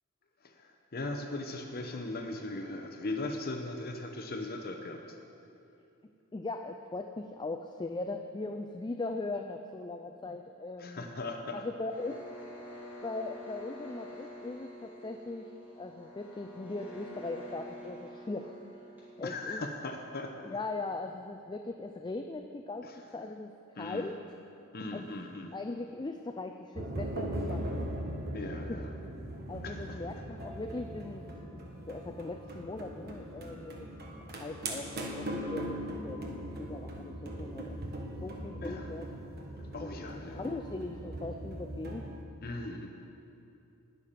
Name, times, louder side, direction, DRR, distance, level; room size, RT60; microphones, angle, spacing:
voice 1, 0.4-5.0 10.8-11.6 19.2-20.6 22.8-23.0 23.8-24.1 24.7-25.5 28.3-28.9 29.6-30.0 38.6-38.9 39.6-40.4 42.4-42.9, left 2 dB, 45° left, 4 dB, 0.9 m, -39 dB
voice 2, 6.3-11.2 11.5-12.3 13.0-18.6 19.2-19.6 20.4-24.2 24.9-25.1 25.5-27.8 28.7-28.8 29.5-31.6 31.9-33.9 34.3-36.3 36.6-37.9 38.2-39.1 39.8-42.1, left 2 dB, 20° left, 5 dB, 0.4 m, -39 dB
sound 1, 11.9-19.7, equal, 10° right, 3.5 m, -48 dB
sound 2, 26.8-42.2, right 1 dB, 45° right, 1.3 m, -40 dB
19.5 x 6.7 x 5.7 m, 2.7 s
head